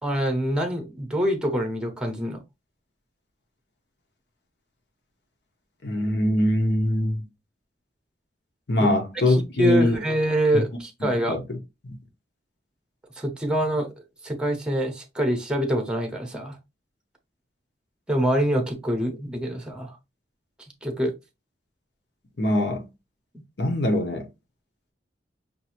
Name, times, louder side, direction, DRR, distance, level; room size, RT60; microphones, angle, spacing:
voice 1, 0.0-2.4 8.8-8.9 9.3-11.4 13.2-13.9 14.2-16.6 18.1-19.9 20.8-21.1 23.3-23.4, equal, 5° right, 0.7 m, -25 dB
voice 2, 5.8-7.3 8.7-10.0 11.0-11.6 11.8-12.0 22.4-22.9 23.6-24.3, left 1 dB, 65° left, 0.9 m, -23 dB
5.4 x 2.6 x 2.9 m
head